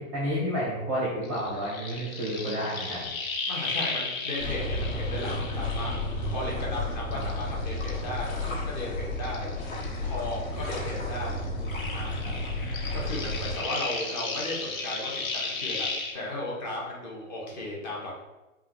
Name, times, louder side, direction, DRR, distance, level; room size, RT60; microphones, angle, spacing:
voice 1, 0.1-3.1 7.1-7.2 12.2-12.3, equal, 10° right, -7 dB, 0.5 m, -30 dB
sound 1, 1.2-6.8 7.1-10.5 10.7-16.1, left 3 dB, 80° left, 1.1 m, -35 dB
voice 2, 3.5-9.7 10.0-11.4 11.9-12.3 12.9-18.2, left 1 dB, 35° left, -3 dB, 0.9 m, -36 dB
sound 2, 4.4-13.6, left 1 dB, 65° left, 1.4 m, -32 dB
4.4 x 2.3 x 3.6 m, 1.1 s
hypercardioid pair, 170°, 41 cm